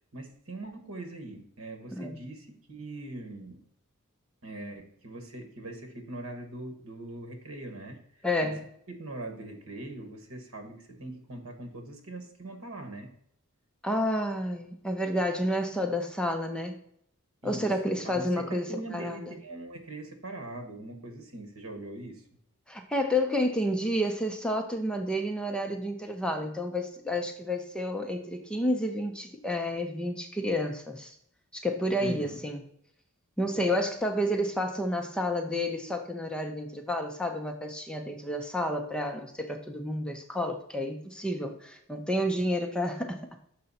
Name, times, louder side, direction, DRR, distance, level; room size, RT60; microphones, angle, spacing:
voice 1, 0.1-3.6 4.4-8.5 9.0-13.1 17.4-22.2 32.0-32.4, right 2 dB, 65° right, 5 dB, 1.5 m, -42 dB
voice 2, 8.2-8.6 13.8-16.8 17.4-19.3 22.7-31.1 31.5-32.6 33.4-43.3, left 1 dB, 5° left, 4 dB, 0.6 m, -30 dB
6.6 x 5.4 x 4.1 m, 0.71 s
head